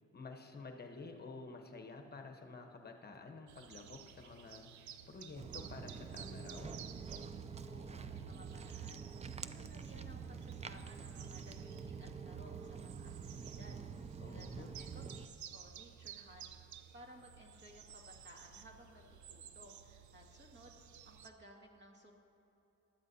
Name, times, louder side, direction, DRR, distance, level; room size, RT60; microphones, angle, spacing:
voice 1, 0.1-6.7 14.2-14.7, left 3 dB, 35° left, 4 dB, 1.0 m, -51 dB
sound 1, 3.5-21.3, right 8 dB, 75° right, 0.7 m, -55 dB
Walk footsteps, 5.4-15.2, right 6 dB, 20° right, 0.4 m, -47 dB
voice 2, 7.6-16.5 16.9-19.0 19.3-22.1, equal, 40° right, 1 dB, 1.9 m, -59 dB
19.0 x 12.0 x 2.7 m, 3.0 s
cardioid pair, 90°, 30 cm